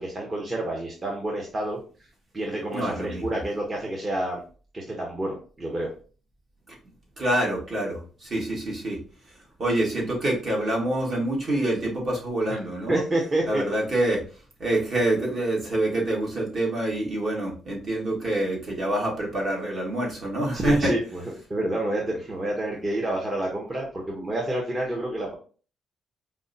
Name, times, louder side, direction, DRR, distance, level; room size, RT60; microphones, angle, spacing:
voice 1, 0.0-1.8 2.3-4.4 4.7-5.9 12.5-13.6 20.5-21.2 21.5-25.3, right 1 dB, 30° right, -1 dB, 0.8 m, -29 dB
voice 2, 2.7-3.2 7.2-9.0 9.6-13.0 13.5-14.2 14.6-20.9, right 1 dB, 50° right, -2 dB, 1.5 m, -26 dB
5.0 x 2.1 x 2.6 m, 0.39 s
cardioid pair, 90°, 0 cm